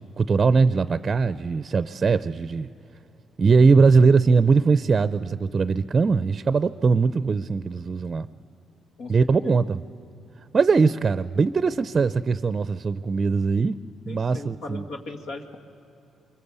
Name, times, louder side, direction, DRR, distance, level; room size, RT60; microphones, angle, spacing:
voice 1, 0.0-2.7 3.4-8.3 9.1-9.8 10.5-13.8 14.1-14.8, right 4 dB, 35° right, 14 dB, 0.5 m, -21 dB
voice 2, 14.1-15.6, left 2 dB, 85° left, 2 dB, 2.1 m, -37 dB
24.5 x 23.0 x 8.2 m, 2.9 s
cardioid pair, 90°, 0 cm